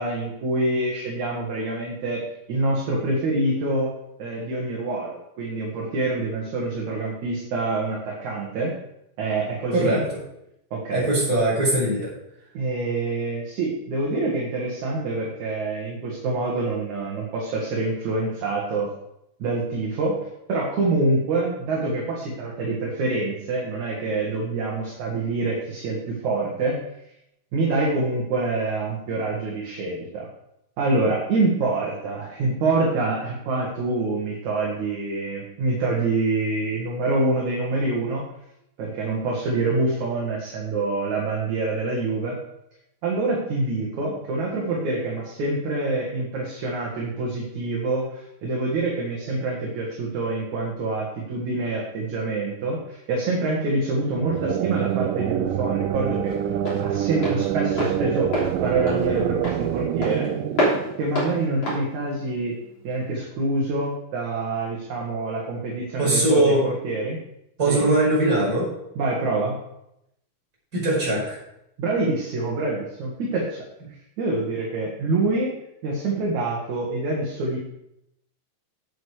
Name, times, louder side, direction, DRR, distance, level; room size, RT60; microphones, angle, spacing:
voice 1, 0.0-2.2 2.5-3.9 4.2-8.8 9.2-10.1 10.7-11.1 12.5-18.9 19.4-26.8 27.5-30.3 30.8-38.2 38.8-42.4 43.0-56.4 56.8-58.3 58.6-60.3 61.0-62.5 62.8-67.2 67.7-67.8 69.0-69.6 71.8-73.6 74.2-75.5 75.8-77.6, right 2 dB, 60° right, -3 dB, 2.8 m, -26 dB
voice 2, 9.7-10.0 10.9-12.1 66.0-66.6 67.6-68.7 70.7-71.4, right 1 dB, 25° right, -5 dB, 5.2 m, -21 dB
sound 1, 54.0-61.6, right 11 dB, 80° right, 2.1 m, -26 dB
Walk footsteps, 54.4-63.1, equal, 45° left, 4.1 m, -30 dB
9.2 x 8.6 x 4.9 m, 0.82 s
omnidirectional pair, 4.1 m